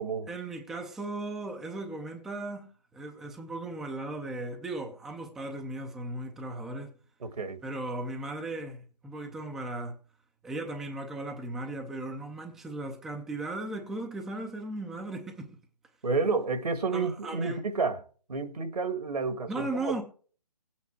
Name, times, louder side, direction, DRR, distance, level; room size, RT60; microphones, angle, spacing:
voice 1, 0.3-6.9 7.6-10.0 10.4-15.5 16.9-17.6 19.5-20.0, right 2 dB, ahead, 0.5 m, -37 dB
voice 2, 7.2-7.6 16.0-20.0, right 4 dB, 70° right, 1.8 m, -30 dB
16.5 x 8.4 x 4.6 m
figure-of-eight pair, 145°, 21 cm